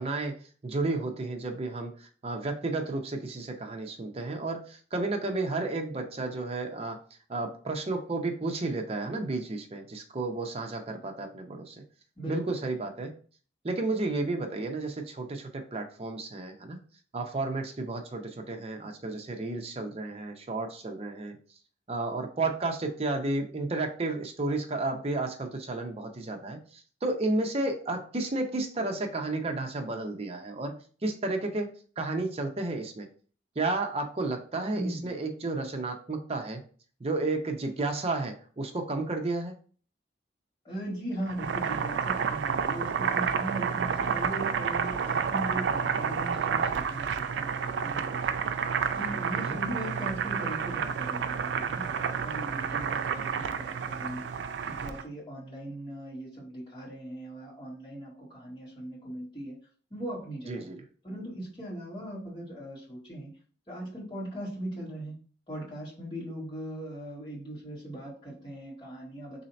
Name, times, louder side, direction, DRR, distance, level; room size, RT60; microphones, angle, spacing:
voice 1, 0.0-7.0 7.3-11.8 12.3-13.1 13.6-16.8 17.1-21.4 21.9-33.1 33.6-36.6 37.0-39.5 49.4-49.6 60.5-60.8, right 2 dB, 35° right, 4 dB, 0.6 m, -32 dB
voice 2, 34.7-35.1 40.6-48.4 48.9-54.2 54.6-59.6 59.9-60.6 61.0-63.3 63.7-65.2 65.5-69.4, right 1 dB, 25° left, -6 dB, 1.8 m, -39 dB
Boiling, 41.2-55.0, right 6 dB, 80° right, 0.3 m, -30 dB
3.1 x 2.7 x 4.0 m, 0.42 s
head